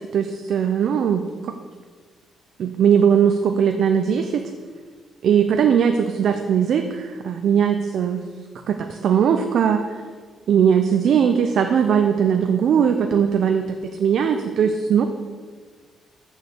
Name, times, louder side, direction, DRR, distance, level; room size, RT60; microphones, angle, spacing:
voice 1, 0.1-1.2 2.6-4.4 5.2-8.2 8.7-9.8 10.5-15.1, right 7 dB, 65° right, 6 dB, 0.6 m, -19 dB
6.7 x 6.4 x 6.5 m, 1.5 s
cardioid pair, 90°, 0 cm